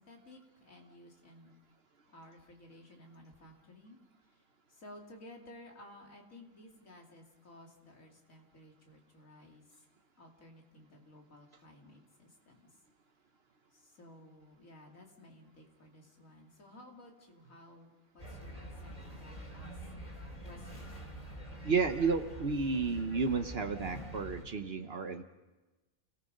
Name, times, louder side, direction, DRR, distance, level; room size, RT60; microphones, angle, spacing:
voice 1, 0.0-1.6 2.1-4.4 4.7-9.8 10.2-12.6 13.7-19.9 20.4-20.9 22.3-22.4, left 1 dB, 85° left, 0 dB, 3.2 m, -55 dB
sound 1, 18.2-24.4, right 1 dB, 30° left, 3.6 m, -46 dB
voice 2, 21.6-25.2, right 4 dB, 55° right, 8 dB, 1.1 m, -32 dB
29.5 x 18.5 x 5.3 m, 1.1 s
omnidirectional pair, 1.4 m